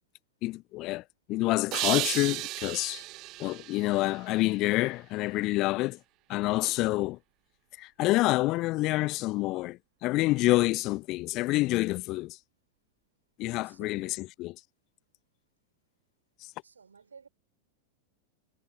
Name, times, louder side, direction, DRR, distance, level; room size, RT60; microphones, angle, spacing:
voice 1, 0.4-1.0 1.3-3.0 3.4-6.0 6.3-7.2 7.8-12.4 13.4-14.5, left 19 dB, 40° left, 0.5 m, -27 dB
sound 1, 1.7-4.9, right 19 dB, 40° right, 0.3 m, -35 dB
voice 2, 13.6-14.3 16.6-17.3, right 5 dB, 75° right, 6.4 m, -54 dB
figure-of-eight pair, 90°, 0 cm